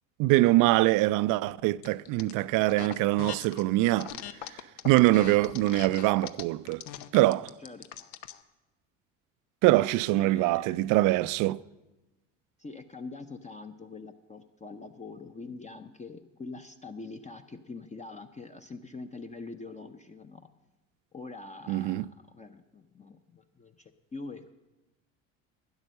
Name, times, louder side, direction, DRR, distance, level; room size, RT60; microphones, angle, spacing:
voice 1, 0.2-4.1 4.8-6.8 7.1-7.5 9.6-11.6 21.7-22.0, right 18 dB, 55° right, 0.5 m, -23 dB
sound 1, 1.8-2.3 2.7-3.6 4.0-8.4, left 11 dB, 75° left, 0.8 m, -41 dB
voice 2, 10.0-10.9 12.6-20.5 21.1-24.5, left 3 dB, 20° left, 0.7 m, -44 dB
12.0 x 9.7 x 6.5 m
hypercardioid pair, 70°, 38 cm